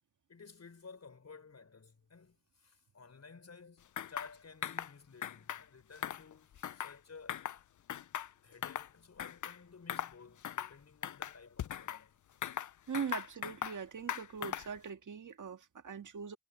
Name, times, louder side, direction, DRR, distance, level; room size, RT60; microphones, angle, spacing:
voice 1, 0.3-7.5 8.4-12.2, left 4 dB, 60° left, 5.3 m, -55 dB
sound 1, 4.0-4.3 4.6-4.9 5.2-5.6 6.0-7.0 7.3-7.6 7.9-8.9 9.2-9.6 9.9-10.1 10.4-10.7 11.0-12.0 12.4-13.8 14.1-14.8, left 10 dB, 80° left, 0.6 m, -39 dB
voice 2, 12.9-16.4, right 6 dB, 80° right, 2.1 m, -41 dB
wide cardioid pair, 70°, 30 cm